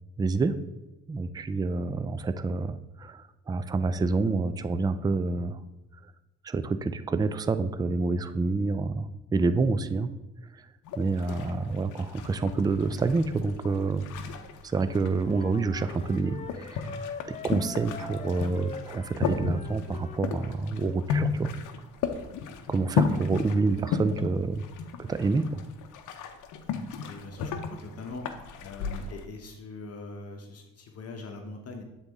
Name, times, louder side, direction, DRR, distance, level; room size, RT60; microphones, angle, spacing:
voice 1, 0.2-0.6 1.1-5.6 6.4-10.1 10.5-10.7 11.0-14.1 14.6-16.9 17.3-21.5 22.7-24.6 25.0-25.6, right 3 dB, 15° right, 12 dB, 0.3 m, -28 dB
sound 1, 10.8-29.3, left 6 dB, 80° left, 0.7 m, -34 dB
Wind instrument woodwind instrument, 15.2-20.6, left 4 dB, 25° left, 0.6 m, -42 dB
voice 2, 27.1-27.5 27.8-28.2 28.6-31.8, left 3 dB, 55° left, 3 dB, 0.9 m, -41 dB
8.0 x 4.0 x 3.5 m, 1.0 s
cardioid pair, 90°, 30 cm